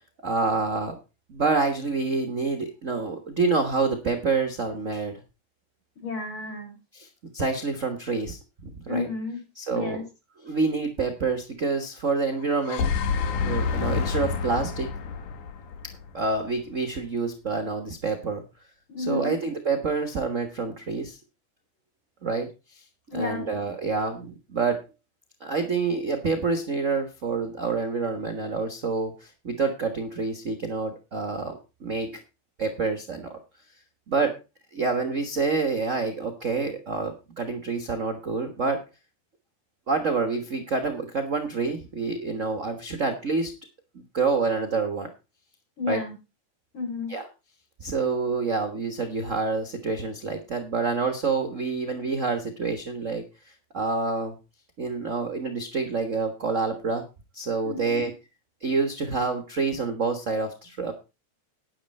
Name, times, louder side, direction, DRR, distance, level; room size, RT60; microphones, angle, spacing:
voice 1, 0.2-1.0 1.3-5.2 6.9-9.1 9.5-10.0 10.4-12.9 13.4-14.9 16.1-18.4 19.0-21.2 22.2-22.8 23.1-24.8 25.4-32.1 32.6-33.4 34.1-34.3 34.7-38.8 39.9-43.5 43.9-45.1 45.9-46.0 47.1-47.3 47.8-53.2 53.7-54.3 54.8-57.0 57.3-58.1 58.6-60.9, right 4 dB, 45° right, 6 dB, 0.9 m, -27 dB
voice 2, 6.0-6.8 8.9-9.4 9.7-10.0 18.9-19.4 23.1-23.5 45.8-46.2 46.7-47.1 57.6-58.0, left 4 dB, 40° left, 2 dB, 5.6 m, -31 dB
sound 1, 12.4-16.6, left 5 dB, 80° left, 2.9 m, -28 dB
10.5 x 9.9 x 4.2 m, 0.28 s
omnidirectional pair, 3.5 m